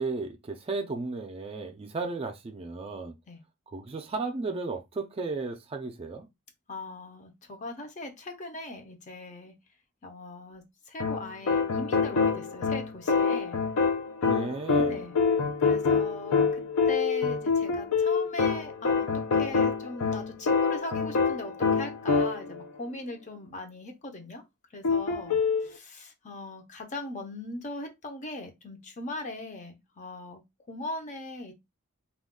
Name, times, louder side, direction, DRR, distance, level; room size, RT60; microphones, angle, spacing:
voice 1, 0.0-3.2 3.7-6.3 14.2-15.1, right 3 dB, 25° right, 0.4 m, -34 dB
voice 2, 6.7-9.5 10.0-13.6 14.9-15.2 15.6-24.4 24.7-30.4 30.7-31.5, left 2 dB, 35° left, 0.6 m, -40 dB
sound 1, 11.0-22.6 24.8-25.7, left 5 dB, 85° left, 0.5 m, -26 dB
2.3 x 2.2 x 3.5 m
head